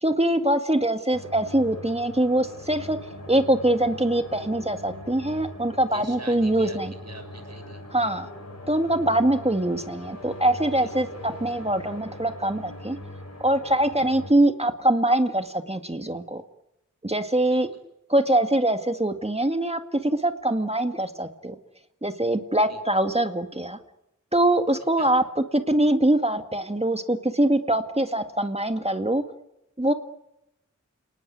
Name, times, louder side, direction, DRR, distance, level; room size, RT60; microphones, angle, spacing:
voice 1, 0.0-3.0 3.3-6.9 7.9-8.3 8.7-13.0 13.4-16.4 17.0-17.7 18.1-21.6 22.0-23.8 24.3-29.2 29.8-29.9, right 1 dB, 20° right, 7 dB, 2.0 m, -23 dB
sound 1, 1.1-14.3, left 1 dB, 55° left, 7.9 m, -41 dB
voice 2, 5.9-7.8 10.8-10.9 17.5-17.6 22.7-22.8 25.0-25.1, right 2 dB, 55° right, 6 dB, 6.9 m, -43 dB
29.5 x 19.5 x 9.5 m, 0.88 s
cardioid pair, 40°, 31 cm